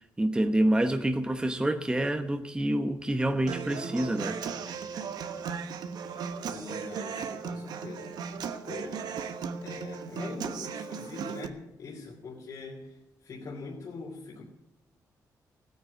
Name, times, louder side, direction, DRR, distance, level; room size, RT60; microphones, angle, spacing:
voice 1, 0.0-4.4, right 1 dB, 15° right, 1.0 m, -27 dB
Human voice / Acoustic guitar, 3.5-11.5, right 6 dB, 85° right, 1.2 m, -36 dB
voice 2, 6.5-9.2 9.6-14.4, left 3 dB, 60° left, 2.8 m, -43 dB
16.5 x 9.5 x 8.4 m
cardioid pair, 110°, 7 cm